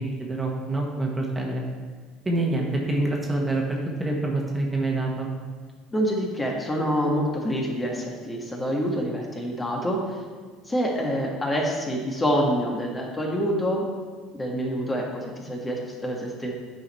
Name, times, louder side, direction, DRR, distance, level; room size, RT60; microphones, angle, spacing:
voice 1, 0.0-1.6 2.2-3.6 4.0-5.3, right 2 dB, 15° right, -1 dB, 1.5 m, -26 dB
voice 2, 5.9-10.2 10.7-13.8 14.3-16.5, equal, 20° left, -1 dB, 1.4 m, -26 dB
9.0 x 5.1 x 4.2 m, 1.5 s
supercardioid pair, 100°, 0 cm